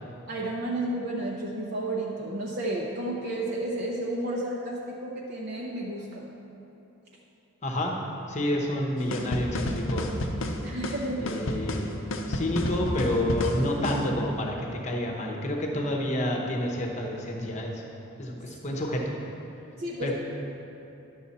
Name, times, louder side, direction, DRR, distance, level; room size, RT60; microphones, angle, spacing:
voice 1, 0.3-6.3 10.6-11.2 19.8-20.1, right 1 dB, 50° right, -3 dB, 0.7 m, -32 dB
voice 2, 7.6-7.9 8.3-10.1 11.2-11.9 12.2-17.8 18.2-19.0 20.0-20.1, left 1 dB, 35° left, 0 dB, 0.9 m, -29 dB
sound 1, 9.1-14.1, left 1 dB, 70° left, 0.7 m, -30 dB
10.5 x 6.4 x 4.2 m, 2.9 s
head